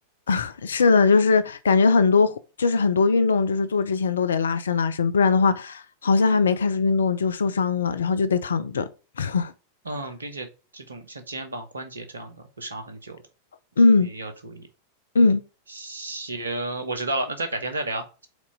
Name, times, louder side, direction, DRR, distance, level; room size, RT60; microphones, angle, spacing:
voice 1, 0.3-8.9 9.2-9.5 13.8-14.1 15.1-15.4, left 4 dB, 70° left, 0.5 m, -20 dB
voice 2, 9.8-10.5 10.7-13.2 14.0-14.7 15.7-18.3, right 2 dB, 75° right, 1.2 m, -32 dB
5.1 x 4.2 x 5.0 m
figure-of-eight pair, 90°, 0 cm